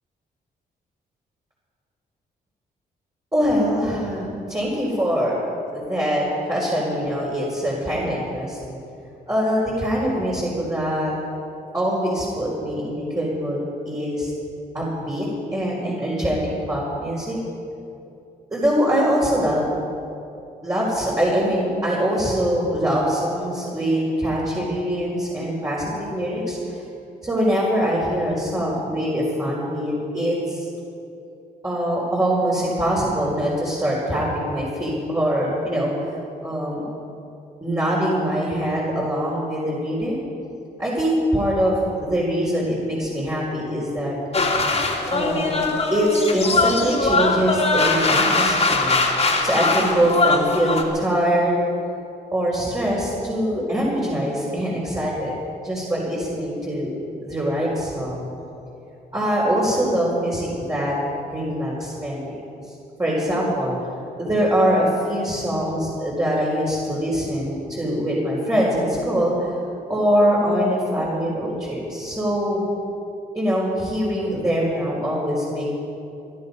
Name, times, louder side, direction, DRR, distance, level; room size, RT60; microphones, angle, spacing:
voice 1, 3.3-5.4 5.7-8.8 9.3-11.1 11.7-13.6 13.8-14.3 14.7-15.3 15.5-16.4 16.7-17.4 18.5-19.7 20.6-26.8 27.2-30.7 31.6-35.9 36.4-36.8 37.6-40.2 40.8-44.2 45.1-49.0 49.4-51.6 52.3-55.3 55.6-56.9 57.2-58.2 59.1-61.0 61.3-62.3 62.7-62.8 63.0-63.7 64.2-69.5 69.9-72.6 73.3-75.6, equal, 20° right, -6 dB, 4.7 m, -23 dB
sound 1, 44.3-50.8, left 3 dB, 35° left, 2.8 m, -21 dB
20.5 x 12.0 x 5.4 m, 2.8 s
cardioid pair, 65°, 17 cm